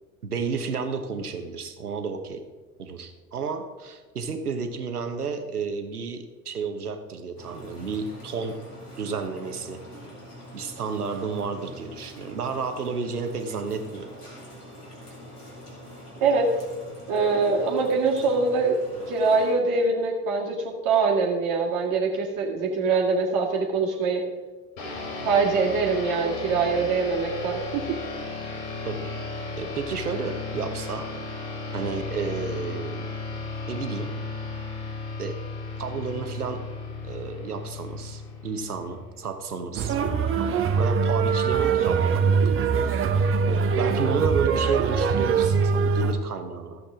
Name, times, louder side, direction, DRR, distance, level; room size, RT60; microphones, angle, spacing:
voice 1, 0.2-2.4 2.8-8.6 9.0-9.8 10.5-14.1 28.8-29.1 29.6-31.1 31.7-33.1 33.7-34.1 35.2-35.4 35.8-36.6 37.0-40.0 40.4-42.9 43.5-46.8, right 5 dB, 80° right, 7 dB, 1.1 m, -31 dB
sound 1, 7.4-19.5, equal, 85° left, 2.6 m, -44 dB
voice 2, 17.1-18.8 19.1-24.2 25.2-28.0, right 4 dB, 45° right, -2 dB, 1.9 m, -23 dB
sound 2, 24.8-39.6, left 3 dB, 55° left, 2.9 m, -35 dB
sound 3, 39.7-46.1, right 5 dB, 30° right, 1.0 m, -22 dB
13.5 x 7.8 x 3.7 m, 1.3 s
figure-of-eight pair, 75°, 45 cm